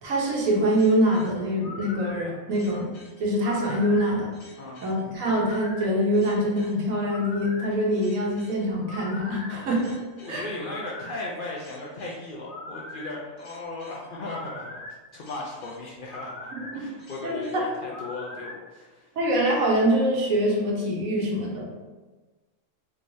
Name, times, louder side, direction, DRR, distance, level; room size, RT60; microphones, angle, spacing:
voice 1, 0.0-2.9 3.2-4.3 4.8-10.0 10.3-10.4 16.5-16.8 17.2-17.7 19.2-21.7, equal, 85° right, -2 dB, 1.2 m, -24 dB
sound 1, 0.7-18.6, left 2 dB, 80° left, 1.3 m, -42 dB
voice 2, 10.2-14.8 15.1-19.1, left 2 dB, 65° left, -3 dB, 0.5 m, -37 dB
3.7 x 3.0 x 2.6 m, 1.3 s
omnidirectional pair, 1.4 m